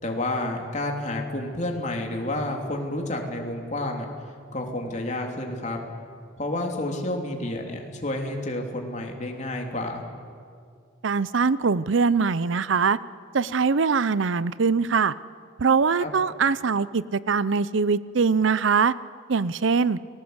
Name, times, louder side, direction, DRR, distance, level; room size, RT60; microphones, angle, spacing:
voice 1, 0.0-4.1 4.5-5.8 6.4-10.0 16.0-16.1, left 1 dB, 35° left, 2 dB, 3.2 m, -30 dB
voice 2, 11.0-13.0 13.3-15.1 15.6-18.9 19.3-20.0, right 5 dB, 65° right, 18 dB, 0.6 m, -22 dB
29.5 x 19.5 x 8.0 m, 2.2 s
head